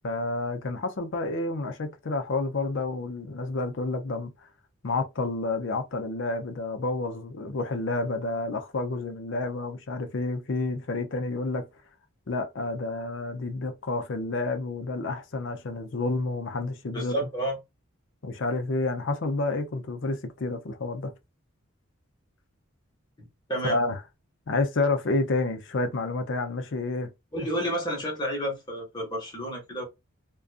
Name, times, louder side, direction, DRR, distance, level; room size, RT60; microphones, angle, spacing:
voice 1, 0.0-4.3 4.8-11.7 12.3-17.2 18.2-21.1 23.6-24.0 24.5-27.1, left 2 dB, 60° left, 0.5 m, -29 dB
voice 2, 16.9-17.6 23.5-23.8 27.3-29.8, right 1 dB, 20° left, 1.1 m, -30 dB
2.4 x 2.3 x 2.4 m
head